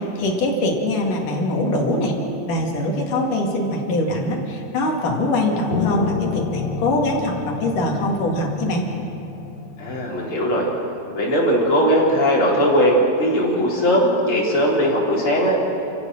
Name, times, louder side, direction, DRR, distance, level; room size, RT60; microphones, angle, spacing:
voice 1, 0.0-2.1 2.5-8.9, left 1 dB, 55° left, -1 dB, 3.4 m, -22 dB
Piano, 5.7-11.0, left 9 dB, 80° left, 2.6 m, -30 dB
voice 2, 9.8-10.7 11.1-15.6, equal, 30° left, -5 dB, 4.5 m, -19 dB
29.0 x 15.5 x 6.4 m, 2.8 s
omnidirectional pair, 4.9 m